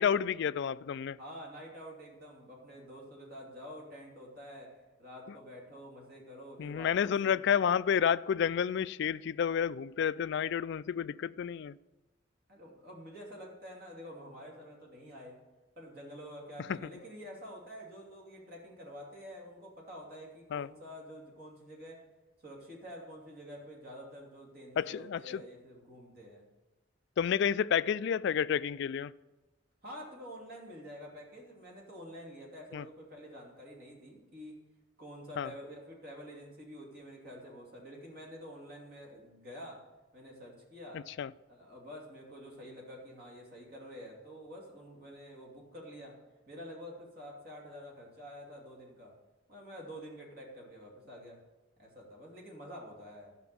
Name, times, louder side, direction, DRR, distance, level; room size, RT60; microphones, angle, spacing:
voice 1, 0.0-1.2 6.6-11.8 16.7-16.8 20.5-20.7 24.8-25.4 27.2-29.1 32.7-32.8 35.4-35.5 40.9-41.3, left 8 dB, 60° left, 0.3 m, -30 dB
voice 2, 1.2-7.4 12.5-15.4 15.8-22.0 22.4-26.5 29.8-34.6 35.0-39.8 40.1-41.1 41.5-46.2 46.5-49.2 49.5-51.4 51.8-53.3, equal, 50° right, 2.8 m, -48 dB
13.5 x 6.0 x 7.0 m
head